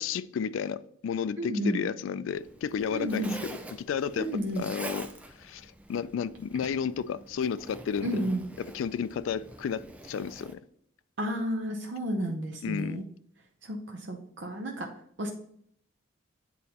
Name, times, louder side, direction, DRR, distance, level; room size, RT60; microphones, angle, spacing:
voice 1, 0.0-3.3 3.9-4.3 4.6-5.1 5.4-8.2 8.6-10.5 12.6-13.0, left 7 dB, 75° left, 0.3 m, -32 dB
voice 2, 1.4-1.8 2.9-3.3 4.2-4.6 8.0-8.4 11.2-13.0 13.6-14.9 15.2-15.3, right 1 dB, 60° right, 0.7 m, -31 dB
Zipper (clothing), 2.3-10.5, right 1 dB, 5° right, 0.3 m, -45 dB
8.5 x 4.0 x 2.8 m
head